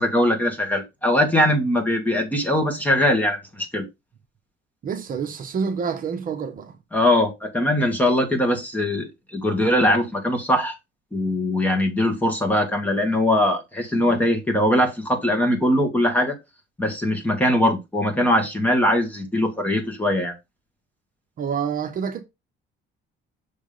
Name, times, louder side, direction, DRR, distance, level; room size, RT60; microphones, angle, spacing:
voice 1, 0.0-3.8 6.9-10.7 11.1-16.4 16.8-20.3, left 1 dB, 10° left, 1.7 m, -21 dB
voice 2, 4.8-6.8 21.4-22.2, right 6 dB, 45° right, 0.9 m, -27 dB
6.3 x 3.6 x 5.2 m
cardioid pair, 145°, 20 cm